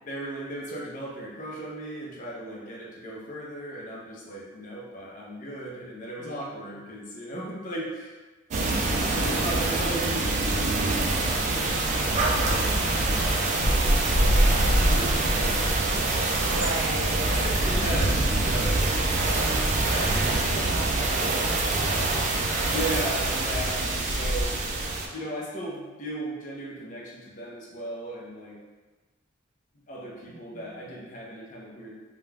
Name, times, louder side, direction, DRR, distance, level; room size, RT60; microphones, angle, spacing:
voice 1, 0.1-8.2 8.9-17.0 17.4-19.4 19.9-20.9 22.7-24.6 25.1-28.6 29.9-31.9, right 1 dB, 40° left, -4 dB, 0.5 m, -37 dB
voice 2, 6.2-6.7 9.0-9.6 16.5-17.2 20.2-22.0 30.2-31.0, right 2 dB, 80° right, -2 dB, 0.6 m, -38 dB
sound 1, 8.5-25.1, right 2 dB, 35° right, 0.3 m, -24 dB
2.3 x 2.1 x 3.2 m, 1.3 s
head